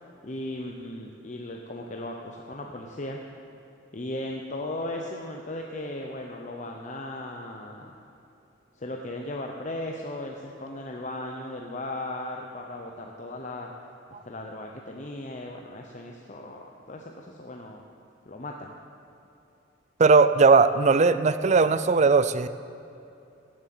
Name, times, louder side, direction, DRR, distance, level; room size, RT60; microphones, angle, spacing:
voice 1, 0.2-3.2 3.9-8.0 8.7-13.7 14.2-17.8 18.3-18.8, left 1 dB, 40° left, 1 dB, 0.8 m, -37 dB
voice 2, 20.0-22.5, right 4 dB, 35° right, 13 dB, 0.4 m, -18 dB
17.0 x 7.7 x 7.8 m, 2.8 s
head